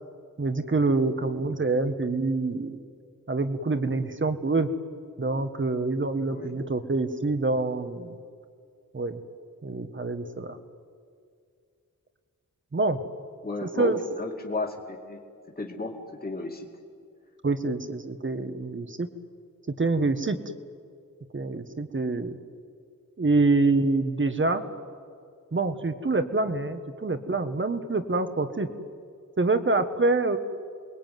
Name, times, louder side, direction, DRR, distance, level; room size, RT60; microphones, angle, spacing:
voice 1, 0.4-2.8 3.3-4.7 5.2-8.2 8.9-9.2 9.6-10.6 12.7-13.0 13.8-14.0 17.4-19.1 19.8-20.4 21.3-22.4 23.2-24.6 25.5-28.7 29.4-30.4, right 3 dB, 35° right, 8 dB, 1.6 m, -26 dB
voice 2, 13.4-15.2 15.6-16.7, left 3 dB, 30° left, 1 dB, 2.6 m, -34 dB
28.5 x 21.5 x 9.4 m, 2.3 s
wide cardioid pair, 125°, 32 cm